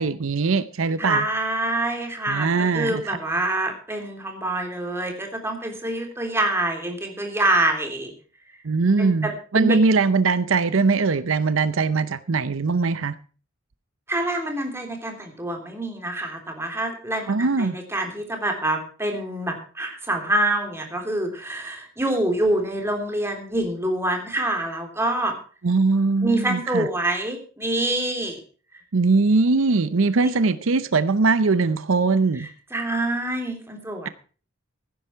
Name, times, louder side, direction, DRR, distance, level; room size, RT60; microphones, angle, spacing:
voice 1, 0.0-1.2 2.3-3.2 8.6-9.3 9.5-13.2 17.3-17.7 25.6-26.9 28.9-32.5, right 4 dB, 80° right, 0.7 m, -21 dB
voice 2, 1.0-8.1 9.0-9.8 14.1-25.4 26.2-28.4 28.7-28.8 30.2-30.3 32.4-34.1, right 1 dB, 15° right, 3.3 m, -26 dB
16.0 x 10.5 x 4.6 m
head